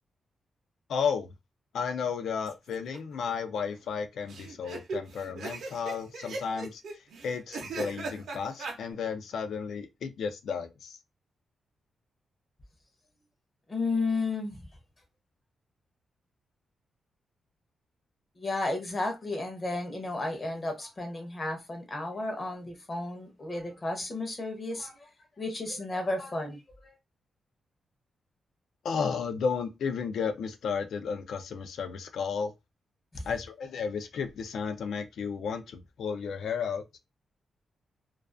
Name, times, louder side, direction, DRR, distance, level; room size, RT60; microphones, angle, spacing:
voice 1, 0.9-1.3 1.7-6.8 7.2-11.0 28.8-32.5 33.3-36.8, left 6 dB, 70° left, 0.4 m, -33 dB
sound 1, 2.5-3.0 3.3-3.4 3.5-3.6 4.3-8.8, right 3 dB, 70° right, 0.6 m, -38 dB
voice 2, 13.7-14.6 18.4-25.1 25.4-26.9 33.1-33.2, left 2 dB, 25° left, 0.6 m, -33 dB
2.3 x 2.3 x 2.4 m
wide cardioid pair, 165°, 0 cm